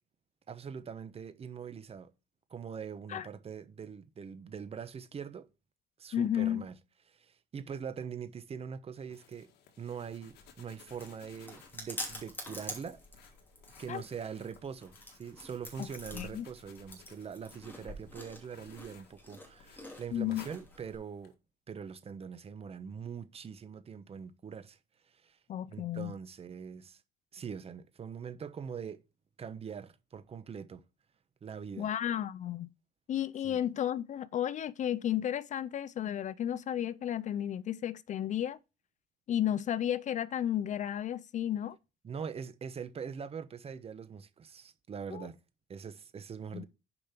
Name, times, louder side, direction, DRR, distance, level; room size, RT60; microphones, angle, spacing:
voice 1, 0.5-2.1 2.5-5.5 6.0-6.8 7.2-9.5 9.8-13.0 13.8-14.9 15.2-21.3 21.7-24.8 25.2-25.4 25.7-27.0 27.3-29.0 29.4-30.8 31.4-31.9 33.4-33.6 42.0-45.4 45.7-46.6, right 7 dB, 35° right, 0.9 m, -43 dB
voice 2, 6.1-6.6 13.9-14.0 15.8-15.9 16.1-16.5 20.1-20.5 25.5-26.1 31.8-32.7 33.1-38.6 39.3-41.8 45.1-45.3 46.5-46.6, left 10 dB, 45° left, 0.5 m, -33 dB
sound 1, 8.9-21.3, left 8 dB, 75° left, 1.6 m, -59 dB
Chewing mastication, 10.3-21.0, left 1 dB, 10° left, 2.8 m, -47 dB
6.9 x 5.1 x 5.8 m
cardioid pair, 110°, 17 cm